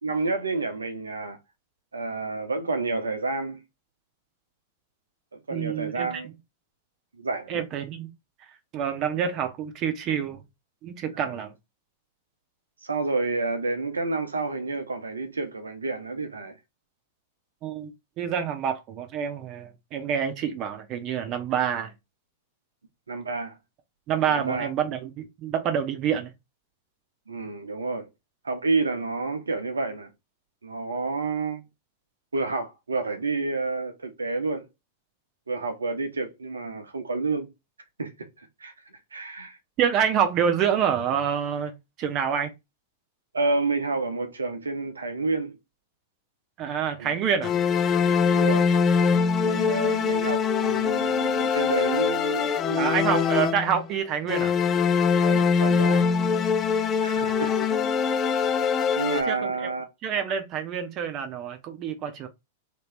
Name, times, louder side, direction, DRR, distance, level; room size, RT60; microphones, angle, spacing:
voice 1, 0.0-1.4 1.9-3.6 5.3-6.3 7.2-7.6 11.1-11.3 12.8-16.6 23.1-23.6 24.3-24.7 27.3-28.1 28.4-30.1 30.6-31.6 32.3-34.6 35.5-37.5 38.0-38.7 39.1-39.6 43.3-45.5 47.0-47.2 48.2-48.7 49.4-53.3 55.2-56.0 57.0-57.7 58.3-58.5 58.9-59.9, right 3 dB, 80° right, 1.0 m, -29 dB
voice 2, 5.5-6.2 7.5-8.1 8.7-10.4 10.8-11.5 17.6-21.9 24.1-26.3 39.8-42.5 46.6-47.5 52.8-54.5 57.2-57.4 59.2-59.7 60.0-62.3, right 8 dB, 40° right, 0.9 m, -27 dB
sound 1, 47.4-53.9 54.3-59.2, left 6 dB, 25° left, 0.6 m, -23 dB
3.4 x 3.0 x 3.4 m
figure-of-eight pair, 100°, 0 cm